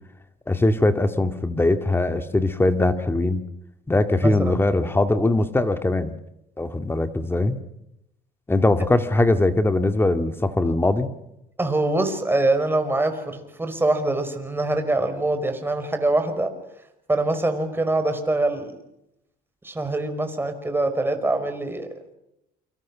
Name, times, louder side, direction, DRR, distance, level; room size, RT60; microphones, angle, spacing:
voice 1, 0.5-3.4 3.9-6.1 6.6-7.6 8.5-11.1, left 2 dB, 15° left, 8 dB, 2.2 m, -21 dB
voice 2, 4.2-4.5 11.6-16.5 17.1-18.7 19.6-21.9, right 2 dB, 15° right, 7 dB, 5.0 m, -24 dB
28.5 x 25.5 x 6.3 m, 0.84 s
cardioid pair, 110°, 17 cm